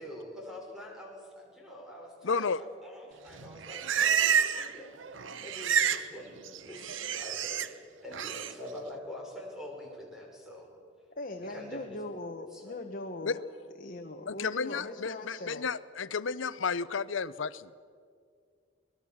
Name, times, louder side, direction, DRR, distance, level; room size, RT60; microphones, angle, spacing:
voice 1, 0.0-4.9 5.4-7.7 8.0-10.7 11.5-12.0 12.5-12.6, left 1 dB, 5° right, -1 dB, 5.9 m, -45 dB
voice 2, 2.2-2.6 13.2-13.3 14.3-17.7, left 5 dB, 80° left, 16 dB, 0.7 m, -32 dB
Livestock farm animals working animals, 3.3-4.8 5.0-6.1 6.4-7.7 8.1-8.5, right 8 dB, 85° right, 0.8 m, -29 dB
voice 3, 11.2-13.4 13.8-15.6, left 2 dB, 50° left, 4 dB, 1.3 m, -40 dB
24.5 x 20.5 x 7.2 m, 2.2 s
head